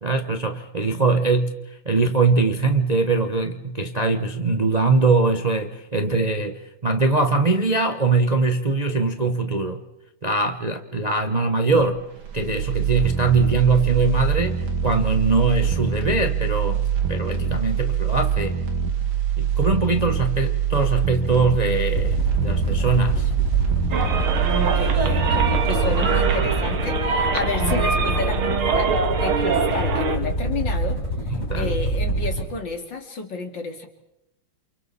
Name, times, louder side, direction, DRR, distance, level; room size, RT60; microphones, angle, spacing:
voice 1, 0.0-9.8 10.2-12.0 12.3-18.6 19.4-23.3 31.3-31.8, right 3 dB, 25° right, 5 dB, 0.9 m, -22 dB
sound 1, 11.8-27.9 28.2-28.3, right 8 dB, 75° right, 2.8 m, -24 dB
sound 2, 21.9-32.5, right 1 dB, 30° left, 5.4 m, -26 dB
sound 3, 23.9-30.2, right 5 dB, 90° right, 2.6 m, -24 dB
voice 2, 24.5-31.0 31.3-33.9, left 4 dB, 60° left, 4 dB, 3.1 m, -31 dB
29.0 x 28.5 x 4.2 m, 0.88 s
omnidirectional pair, 2.3 m